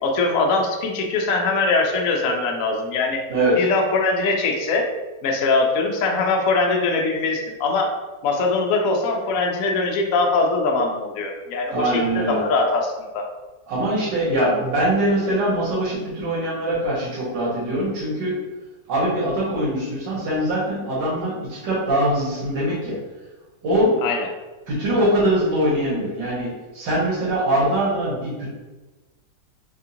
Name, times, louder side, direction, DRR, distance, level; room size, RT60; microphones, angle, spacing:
voice 1, 0.0-3.2 3.6-4.9 5.2-7.9 8.2-13.2 24.0-24.3, left 3 dB, 65° left, 1 dB, 0.8 m, -22 dB
voice 2, 11.7-12.4 13.7-18.3 18.9-23.0 23.6-24.0 24.7-28.5, right 1 dB, 75° right, -7 dB, 1.9 m, -22 dB
4.2 x 2.4 x 2.8 m, 1.2 s
omnidirectional pair, 1.9 m